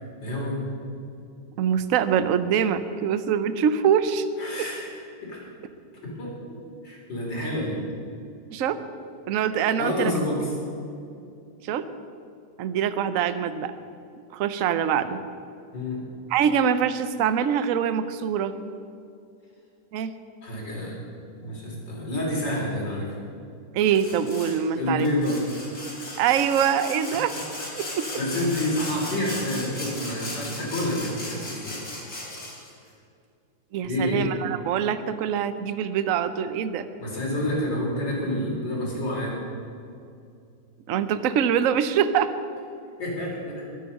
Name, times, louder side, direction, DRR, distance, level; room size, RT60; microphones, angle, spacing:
voice 1, 0.2-0.6 4.4-4.9 5.2-5.4 6.0-6.4 6.8-7.8 9.8-10.5 15.7-16.1 20.4-21.0 21.4-23.2 24.8-25.4 28.2-31.8 33.8-34.3 37.0-39.4 43.0-43.7, left 1 dB, 80° left, -2 dB, 4.4 m, -28 dB
voice 2, 1.6-4.3 8.5-8.8 9.3-10.1 11.6-11.9 12.6-13.7 14.3-15.2 16.3-18.5 19.9-20.2 23.7-25.1 26.2-27.3 27.8-28.1 33.7-36.9 40.9-42.3, right 8 dB, 60° right, 12 dB, 0.9 m, -24 dB
Sawing, 23.9-24.6 25.0-32.7, left 1 dB, 60° left, 4.6 m, -36 dB
21.5 x 9.4 x 5.4 m, 2.5 s
omnidirectional pair, 1.9 m